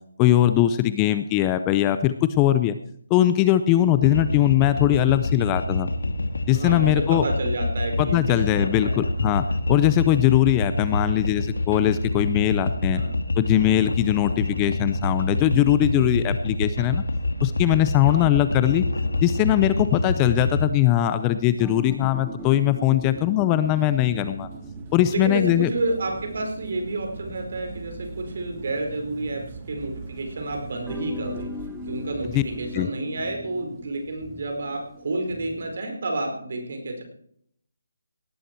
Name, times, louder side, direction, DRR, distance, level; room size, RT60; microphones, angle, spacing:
voice 1, 0.2-2.8 3.1-5.9 6.5-7.2 8.0-13.0 13.4-17.0 17.4-18.8 19.2-24.5 24.9-25.7 32.3-32.4 32.7-32.9, left 13 dB, 15° left, 12 dB, 0.5 m, -21 dB
sound 1, 4.0-20.7, left 2 dB, 85° left, 2.0 m, -27 dB
voice 2, 6.5-9.1 12.9-13.2 18.1-18.4 25.1-31.5 31.9-37.0, right 2 dB, 55° right, 3 dB, 4.6 m, -30 dB
sound 2, 19.0-30.2 30.8-35.8, left 1 dB, ahead, 0.9 m, -42 dB
sound 3, 23.7-32.9, right 4 dB, 25° right, 1.6 m, -41 dB
18.0 x 11.0 x 4.5 m, 0.67 s
hypercardioid pair, 170°, 0 cm